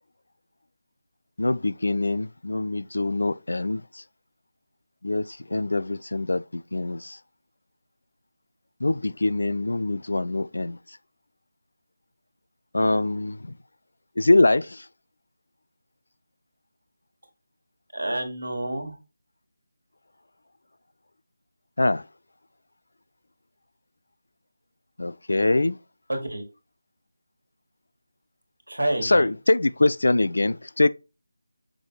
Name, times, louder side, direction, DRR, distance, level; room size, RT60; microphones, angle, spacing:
voice 1, 1.4-3.8 5.0-6.4 6.7-7.2 8.8-10.8 12.7-13.5 14.2-14.8 21.8-22.0 25.0-25.8 29.0-30.9, left 2 dB, 60° left, 0.3 m, -23 dB
voice 2, 17.9-19.0 26.1-26.4 28.7-29.3, right 1 dB, 70° right, 1.8 m, -28 dB
6.0 x 3.4 x 2.3 m
figure-of-eight pair, 160°, 0 cm